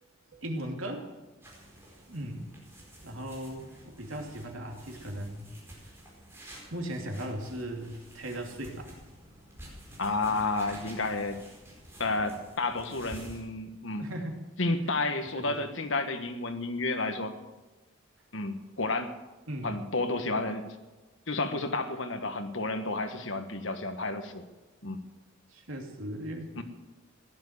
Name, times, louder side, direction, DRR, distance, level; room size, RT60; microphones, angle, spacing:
voice 1, 0.3-1.1 2.1-2.5 3.0-5.5 6.7-8.9 14.0-14.4 15.4-15.6 19.5-19.8 25.5-26.5, right 1 dB, 75° right, 3 dB, 2.7 m, -37 dB
sound 1, 1.4-13.4, right 1 dB, 10° right, 4.6 m, -50 dB
voice 2, 10.0-11.4 12.0-14.1 14.6-17.4 18.3-19.1 19.6-20.7 21.3-24.4 24.8-25.0 26.6-26.7, left 3 dB, 65° left, 8 dB, 1.5 m, -31 dB
16.0 x 11.0 x 8.1 m, 1.2 s
head